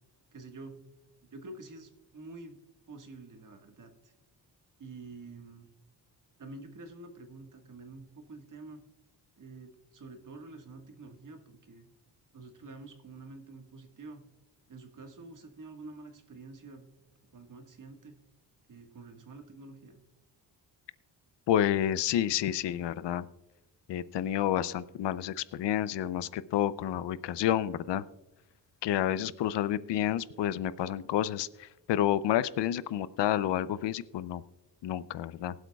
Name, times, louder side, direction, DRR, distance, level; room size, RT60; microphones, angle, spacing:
voice 1, 0.3-0.8 1.2-2.6 2.9-4.1 4.8-5.7 6.4-8.8 9.4-11.9 12.3-14.2 14.7-16.9 17.3-18.2 18.7-20.0, right 3 dB, 45° right, 5 dB, 1.6 m, -48 dB
voice 2, 21.5-23.3 23.9-28.0 28.8-34.4 34.8-35.5, left 11 dB, 80° left, 17 dB, 0.6 m, -29 dB
24.0 x 8.0 x 2.3 m, 1.0 s
cardioid pair, 110°, 42 cm